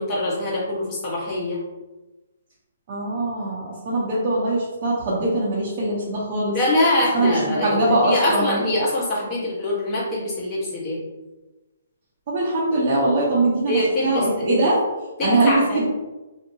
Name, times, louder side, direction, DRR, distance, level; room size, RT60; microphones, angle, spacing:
voice 1, 0.0-1.6 6.5-11.0 13.7-14.2 15.2-15.8, left 1 dB, 20° left, -7 dB, 0.9 m, -23 dB
voice 2, 2.9-6.6 7.1-8.6 12.3-14.8 15.2-15.8, right 2 dB, 45° right, -7 dB, 0.6 m, -22 dB
2.7 x 2.1 x 2.7 m, 1.1 s
hypercardioid pair, 150°, 0 cm